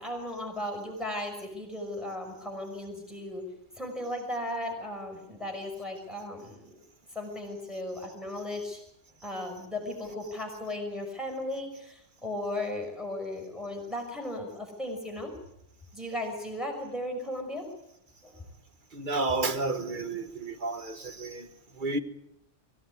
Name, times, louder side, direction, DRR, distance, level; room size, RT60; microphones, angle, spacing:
voice 1, 0.0-3.5 3.8-6.8 7.1-8.8 9.2-15.3 15.9-17.6 18.2-18.4, left 1 dB, ahead, 5.9 m, -36 dB
voice 2, 18.9-21.5 21.8-22.0, right 3 dB, 45° right, 1.6 m, -31 dB
24.0 x 16.0 x 9.7 m
omnidirectional pair, 1.2 m